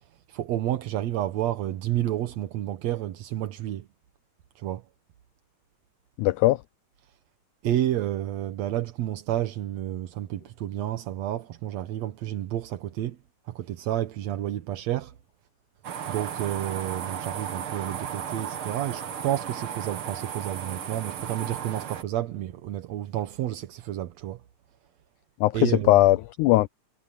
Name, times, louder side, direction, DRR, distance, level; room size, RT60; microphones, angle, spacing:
voice 1, 0.3-3.9 4.6-4.8 7.6-13.2 13.5-15.1 16.1-24.4 25.5-26.1, right 13 dB, 65° right, 1.8 m, -30 dB
voice 2, 6.2-6.6 25.4-26.7, left 17 dB, 90° left, 1.7 m, -20 dB
sound 1, 15.8-22.0, right 8 dB, 50° right, 1.8 m, -35 dB
omnidirectional pair, 4.0 m